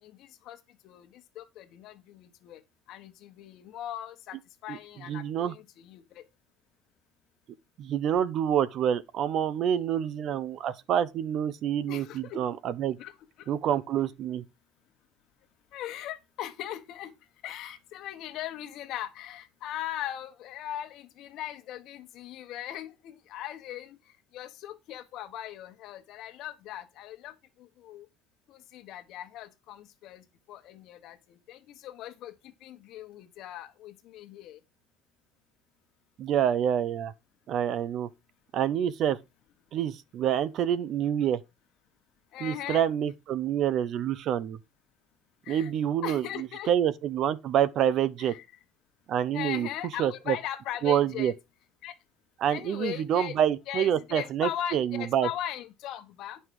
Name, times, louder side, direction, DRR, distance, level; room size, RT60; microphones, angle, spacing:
voice 1, 0.0-2.6 2.9-6.2 11.9-12.4 13.0-13.5 15.7-17.1 17.4-24.0 24.3-28.1 28.5-34.6 42.3-42.8 45.4-45.7 46.0-46.7 48.2-48.4 49.3-51.3 51.8-51.9 52.5-53.4 53.7-56.4, left 11 dB, 60° left, 1.4 m, -39 dB
voice 2, 5.1-5.5 7.8-13.0 13.5-14.4 36.2-37.1 37.5-38.1 38.5-39.2 39.7-41.4 42.4-44.6 45.5-48.3 49.1-49.7 50.0-50.4 50.8-51.3 52.4-55.3, right 9 dB, 50° right, 0.7 m, -27 dB
9.9 x 5.7 x 4.7 m
cardioid pair, 140°, 0 cm